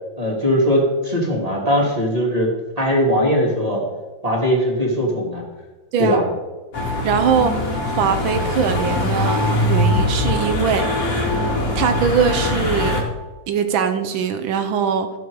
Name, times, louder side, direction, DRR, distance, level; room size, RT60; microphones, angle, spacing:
voice 1, 0.2-2.5 2.8-3.8 4.2-5.4 6.0-6.2, equal, 20° right, -2 dB, 2.5 m, -19 dB
sound 1, 6.7-13.0, left 1 dB, 45° left, 2.1 m, -21 dB
voice 2, 7.0-10.9 11.8-13.1 13.5-15.1, right 7 dB, 75° right, 8 dB, 1.6 m, -21 dB
13.0 x 7.7 x 4.7 m, 1.2 s
omnidirectional pair, 2.2 m